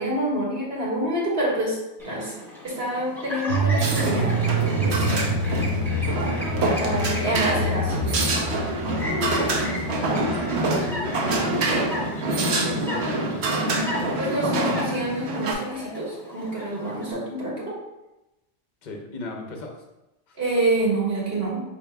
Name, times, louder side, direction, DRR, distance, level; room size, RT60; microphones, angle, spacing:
voice 1, 0.0-1.8 2.0-2.3 2.6-5.1 6.8-8.4 9.2-9.5 14.2-17.7 20.4-21.6, right 1 dB, 60° right, -5 dB, 1.5 m, -27 dB
Chirp tweet, 2.0-17.1, left 1 dB, ahead, 0.9 m, -37 dB
sound 1, 3.5-13.4 13.6-13.7, right 1 dB, 35° right, 0.6 m, -28 dB
sound 2, 3.8-15.5, right 2 dB, 80° right, 1.0 m, -26 dB
voice 2, 10.7-13.5 13.8-14.6 18.8-19.8 20.3-20.4, left 2 dB, 50° left, 2 dB, 0.8 m, -36 dB
5.6 x 2.9 x 3.3 m, 0.96 s
omnidirectional pair, 1.1 m